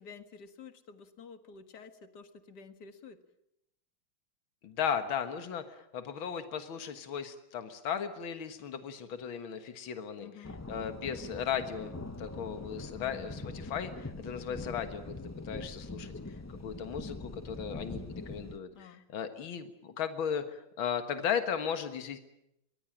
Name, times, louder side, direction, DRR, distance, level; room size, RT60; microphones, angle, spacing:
voice 1, 0.0-3.2 10.2-10.6 12.9-13.7 18.7-19.0, left 6 dB, 55° left, 9 dB, 2.2 m, -51 dB
voice 2, 4.6-11.9 12.2-16.1 16.6-22.2, left 7 dB, 80° left, 8 dB, 2.3 m, -36 dB
sound 1, 10.4-18.6, left 2 dB, 20° left, 0.4 m, -43 dB
24.0 x 20.0 x 8.8 m, 0.81 s
omnidirectional pair, 2.2 m